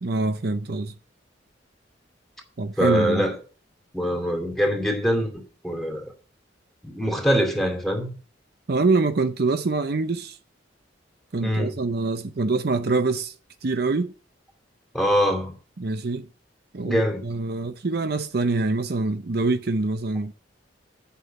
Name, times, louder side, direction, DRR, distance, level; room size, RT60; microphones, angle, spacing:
voice 1, 0.0-0.9 2.6-3.3 8.7-10.4 11.3-13.3 13.6-14.1 15.8-16.3 16.7-20.3, right 3 dB, 55° right, 0.6 m, -25 dB
voice 2, 2.8-3.3 3.9-5.3 5.6-6.1 6.8-8.2 11.4-11.7 14.9-15.5 16.8-17.2, equal, ahead, 2.5 m, -23 dB
8.3 x 6.0 x 7.5 m
head